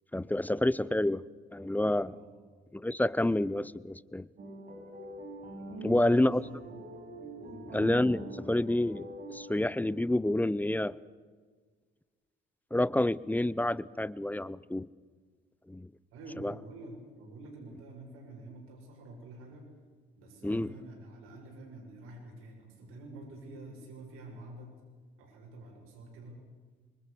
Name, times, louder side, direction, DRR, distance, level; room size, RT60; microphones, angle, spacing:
voice 1, 0.1-1.2 1.5-2.1 2.7-4.3 5.8-6.4 7.7-11.0 12.7-14.9 15.7-15.9 16.4-16.5 20.4-20.7, left 1 dB, 10° left, 19 dB, 0.7 m, -28 dB
sound 1, 4.4-9.8, right 2 dB, 45° right, 5.8 m, -44 dB
voice 2, 5.6-6.8 7.3-7.7 16.1-19.7 20.2-24.8 25.2-26.4, right 2 dB, 85° right, 0 dB, 7.1 m, -48 dB
26.5 x 23.5 x 6.7 m, 1.5 s
cardioid pair, 85°, 21 cm